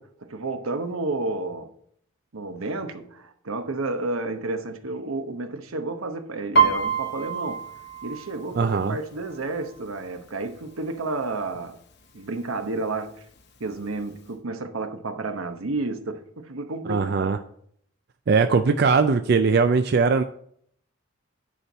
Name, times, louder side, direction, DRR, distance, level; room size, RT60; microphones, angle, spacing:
voice 1, 0.2-1.7 2.3-7.6 8.0-11.8 12.1-13.2 13.6-17.4, right 3 dB, 85° right, 1.0 m, -31 dB
Piano, 6.5-10.2 10.5-11.0 11.3-11.9 12.5-12.6 12.9-13.9 14.3-14.4, right 5 dB, 55° left, 0.8 m, -26 dB
voice 2, 8.5-9.0 16.9-17.4 18.3-20.2, right 4 dB, 50° right, 0.4 m, -20 dB
9.9 x 4.5 x 5.5 m
head